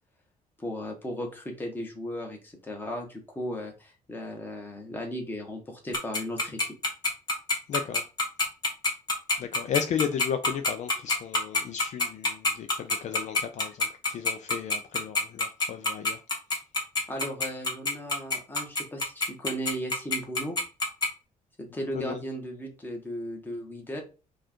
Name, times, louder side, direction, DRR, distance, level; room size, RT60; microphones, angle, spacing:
voice 1, 0.6-6.6 17.1-20.6 21.6-24.0, equal, 15° left, 1.2 m, -36 dB
Tick-tock, 5.9-21.1, left 3 dB, 30° left, 1.5 m, -25 dB
voice 2, 7.7-8.0 9.4-16.2 21.9-22.2, left 8 dB, 55° left, 0.5 m, -34 dB
4.8 x 2.5 x 4.4 m
cardioid pair, 155°, 15 cm